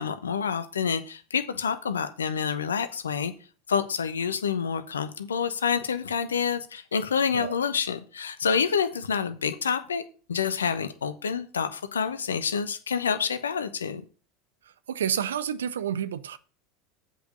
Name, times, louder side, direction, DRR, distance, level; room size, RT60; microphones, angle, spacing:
voice 1, 0.0-3.3 3.7-10.0 10.3-14.0, left 6 dB, 85° left, 0.9 m, -28 dB
voice 2, 14.9-16.4, right 9 dB, 80° right, 0.7 m, -29 dB
8.0 x 5.1 x 6.6 m
hypercardioid pair, 80°, 0 cm